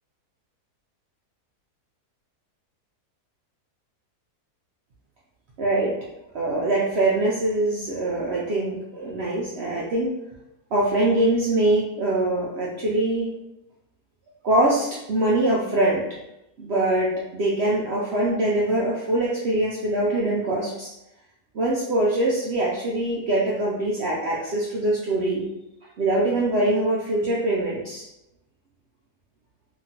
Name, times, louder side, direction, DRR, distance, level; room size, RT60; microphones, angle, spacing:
voice 1, 5.6-5.9 6.3-10.1 10.7-13.3 14.4-16.0 16.6-20.9 21.5-25.4 26.0-28.0, right 1 dB, 75° right, -5 dB, 0.6 m, -23 dB
2.9 x 2.5 x 2.7 m, 0.87 s
omnidirectional pair, 1.7 m